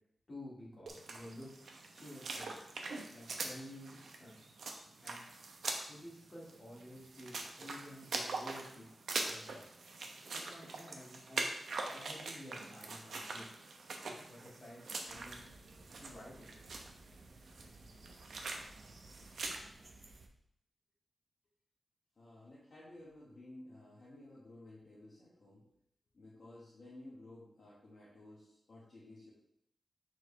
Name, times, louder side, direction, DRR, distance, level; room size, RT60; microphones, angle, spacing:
voice 1, 0.3-1.5 1.9-2.5 3.1-4.4 5.0-5.3 5.9-8.8 9.3-9.6 10.3-11.5 11.9-13.4 14.0-15.4 16.0-16.8, left 1 dB, 30° left, -8 dB, 2.1 m, -52 dB
sound 1, 0.9-19.6, right 3 dB, 75° right, 0.7 m, -43 dB
sound 2, 15.1-20.3, right 2 dB, 40° right, 0.6 m, -58 dB
voice 2, 22.2-25.7 26.1-29.3, left 1 dB, 45° left, -8 dB, 1.5 m, -54 dB
6.4 x 4.6 x 3.3 m, 0.73 s
wide cardioid pair, 175°, 0 cm